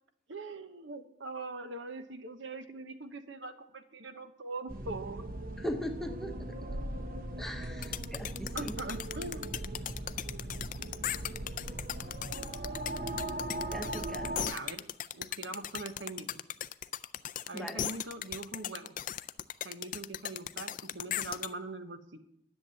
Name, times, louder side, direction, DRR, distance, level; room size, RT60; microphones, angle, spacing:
voice 1, 0.3-5.3 8.5-9.6 14.4-16.4 17.5-19.0 19.6-22.2, right 2 dB, 75° right, 9 dB, 1.0 m, -42 dB
sound 1, 4.7-14.5, right 1 dB, 45° right, 0.9 m, -39 dB
voice 2, 5.6-6.3 7.4-8.7 13.7-14.5 17.5-17.9, equal, ahead, 4 dB, 0.9 m, -39 dB
sound 2, 7.8-21.5, left 10 dB, 45° left, 0.4 m, -37 dB
10.5 x 7.4 x 9.3 m, 0.78 s
head